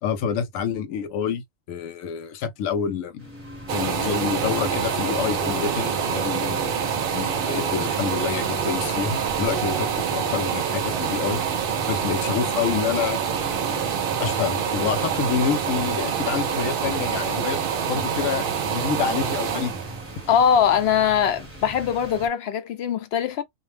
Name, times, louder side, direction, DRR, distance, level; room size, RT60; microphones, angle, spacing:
voice 1, 0.0-3.3 3.7-6.9 7.1-11.4 11.9-13.2 14.2-17.6 17.9-19.8, left 7 dB, 85° left, 1.0 m, -27 dB
sound 1, 3.2-22.3, equal, 10° right, 1.0 m, -39 dB
sound 2, 3.7-21.4 21.8-21.9, right 7 dB, 60° right, 0.6 m, -26 dB
Mallet percussion, 4.0-12.2, right 1 dB, 10° left, 0.4 m, -39 dB
voice 2, 20.3-23.4, left 8 dB, 65° left, 0.7 m, -21 dB
2.3 x 2.1 x 3.2 m
omnidirectional pair, 1.3 m